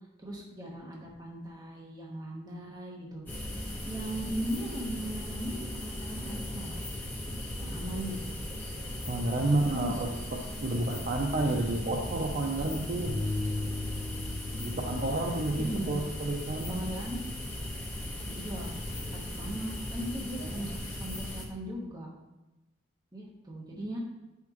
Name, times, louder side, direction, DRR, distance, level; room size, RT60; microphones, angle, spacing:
voice 1, 0.2-3.2 3.8-6.8 7.6-8.3 9.2-9.9 15.6-15.9 16.7-17.2 18.3-18.8 19.1-22.1 23.1-24.0, right 1 dB, 20° right, -3 dB, 1.1 m, -38 dB
sound 1, 3.3-21.4, left 1 dB, 10° left, 1.1 m, -38 dB
voice 2, 9.1-13.2 14.6-16.8 20.4-20.7, right 2 dB, 45° right, 0 dB, 0.6 m, -30 dB
Bass guitar, 13.1-19.3, left 3 dB, 70° left, 0.7 m, -39 dB
9.3 x 5.8 x 3.0 m, 1.0 s
head